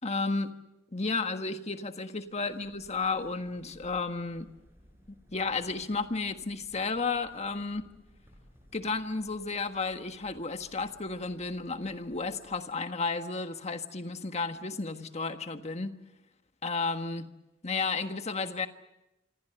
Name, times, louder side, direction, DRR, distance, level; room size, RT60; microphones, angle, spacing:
voice 1, 0.0-0.5 0.9-4.5 5.3-7.8 8.7-16.0 16.6-17.3 17.6-18.7, left 4 dB, 35° left, 7 dB, 1.5 m, -32 dB
sound 1, 2.2-12.7, equal, 10° right, 6.7 m, -60 dB
26.5 x 26.0 x 6.8 m, 0.92 s
head